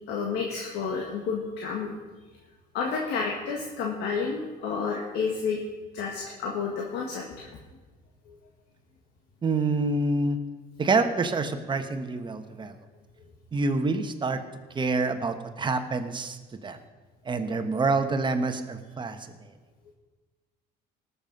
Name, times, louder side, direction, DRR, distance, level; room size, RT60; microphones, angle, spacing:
voice 1, 0.1-1.9 2.7-5.6 5.9-7.5, left 5 dB, 85° left, 0 dB, 1.7 m, -30 dB
voice 2, 9.4-10.4 10.8-12.7 13.5-14.4 14.7-16.4 16.6-16.8 17.2-19.2, right 3 dB, 25° right, 8 dB, 1.2 m, -27 dB
18.5 x 7.1 x 5.3 m, 1.3 s
cardioid pair, 110°, 17 cm